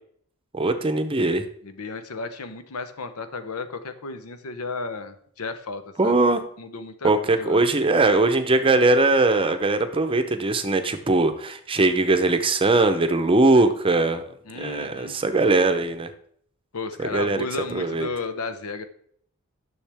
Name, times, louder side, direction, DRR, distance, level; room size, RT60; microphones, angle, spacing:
voice 1, 0.5-1.5 6.0-6.4 7.0-14.3 14.5-16.1 17.0-17.4 17.7-18.1, right 2 dB, 25° right, 8 dB, 0.7 m, -20 dB
voice 2, 1.6-6.1 6.6-7.6 14.5-15.2 16.7-18.9, left 3 dB, 85° left, 10 dB, 0.8 m, -33 dB
10.0 x 6.4 x 3.5 m, 0.63 s
head